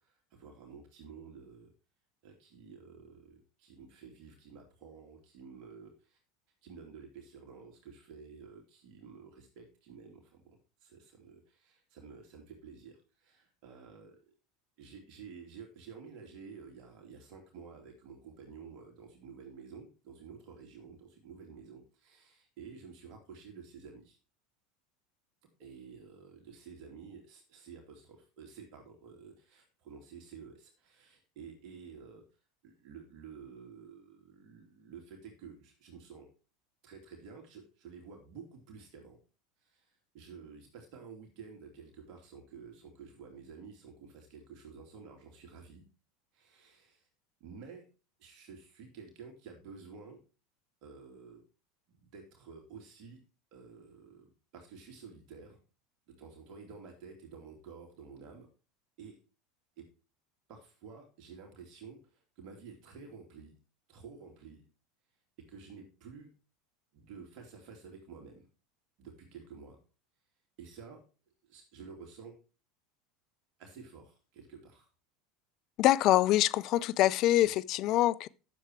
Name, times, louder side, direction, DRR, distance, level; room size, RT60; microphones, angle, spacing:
voice 1, 0.0-1.7 2.2-6.2 6.6-14.2 14.8-24.2 25.6-32.2 32.6-36.3 36.8-39.2 39.6-45.8 46.3-47.1 47.4-47.9 48.2-50.2 50.8-51.4 51.9-53.2 53.5-54.3 54.5-55.6 56.1-58.5 59.0-59.2 59.8-59.9 60.5-63.5 63.9-64.6 65.5-66.3 66.9-68.5 69.0-69.8 70.6-71.0 71.4-72.4 73.6-74.9 77.4-77.5, right 5 dB, 55° right, 2.8 m, -51 dB
voice 2, 75.8-78.3, left 14 dB, 50° left, 0.5 m, -25 dB
10.5 x 7.3 x 4.6 m
hypercardioid pair, 85°, 0 cm